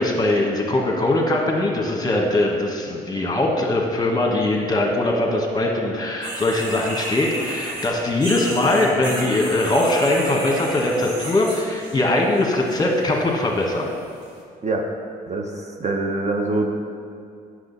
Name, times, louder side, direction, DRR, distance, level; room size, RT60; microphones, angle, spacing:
voice 1, 0.0-13.9, left 2 dB, 25° left, 0 dB, 1.5 m, -21 dB
sound 1, 6.2-12.0 12.3-12.9 13.6-13.7 14.2-14.3, right 1 dB, 75° right, 1.9 m, -32 dB
voice 2, 15.3-16.7, right 2 dB, 40° right, 2 dB, 0.9 m, -24 dB
7.8 x 6.3 x 4.1 m, 2.3 s
supercardioid pair, 65°, 17 cm